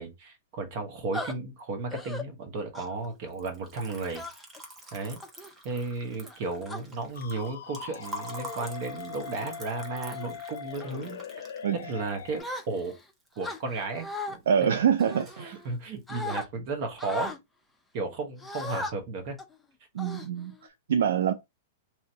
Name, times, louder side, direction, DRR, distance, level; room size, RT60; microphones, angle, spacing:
voice 1, 0.0-4.2 4.9-5.2 5.6-11.2 11.7-13.0 13.4-14.8 15.4-17.3 17.9-19.4, right 3 dB, 50° right, 1.1 m, -34 dB
sound 1, 1.1-1.3 1.9-2.2 2.7-3.1 4.1-4.6 5.2-5.5 6.2-6.8 7.6-7.8 8.4-8.7 9.2-9.5 9.9-10.3 10.8-11.1 12.4-13.0 13.4-14.4 15.0-15.8 16.1-16.5 17.0-17.4 18.4-18.9 19.4-19.5 20.0-20.7, left 2 dB, 5° left, 0.5 m, -38 dB
Liquid, 3.3-13.5 13.8-14.5 14.7-15.5, right 1 dB, 20° right, 0.9 m, -46 dB
sound 2, 7.1-12.4, left 8 dB, 80° left, 0.5 m, -41 dB
voice 2, 14.5-15.6 19.9-21.3, right 8 dB, 80° right, 0.3 m, -25 dB
3.0 x 2.6 x 2.8 m
hypercardioid pair, 135°, 0 cm